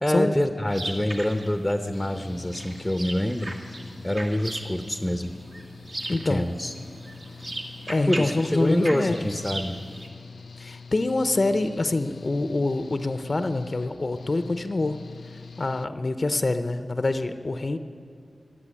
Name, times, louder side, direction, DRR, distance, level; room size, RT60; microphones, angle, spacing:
voice 1, 0.0-3.5 4.0-5.3 6.2-6.7 8.1-9.8, left 1 dB, 10° left, 8 dB, 0.8 m, -26 dB
sound 1, 0.7-10.1, right 1 dB, 50° right, 1.7 m, -38 dB
Engine / Mechanical fan, 1.9-15.9, left 5 dB, 75° left, 0.3 m, -44 dB
voice 2, 6.1-6.4 7.9-9.2 10.6-15.0 15.6-17.8, left 2 dB, 45° left, 10 dB, 0.7 m, -26 dB
15.0 x 10.5 x 8.9 m, 2.3 s
wide cardioid pair, 60°, 0 cm